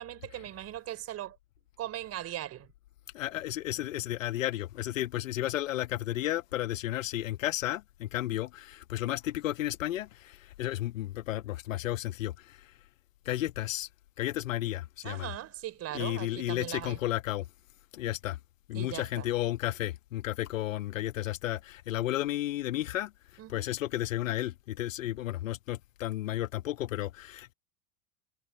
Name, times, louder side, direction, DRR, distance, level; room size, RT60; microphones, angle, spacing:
voice 1, 0.0-1.4 1.8-2.7 15.0-17.0 18.7-19.3 23.4-23.7, right 12 dB, 35° right, 4.6 m, -39 dB
voice 2, 3.1-12.7 13.2-13.9 14.2-15.3 15.9-17.5 17.9-18.4 18.7-23.1 23.5-27.5, left 14 dB, 60° left, 1.4 m, -33 dB
figure-of-eight pair, 85°, 45 cm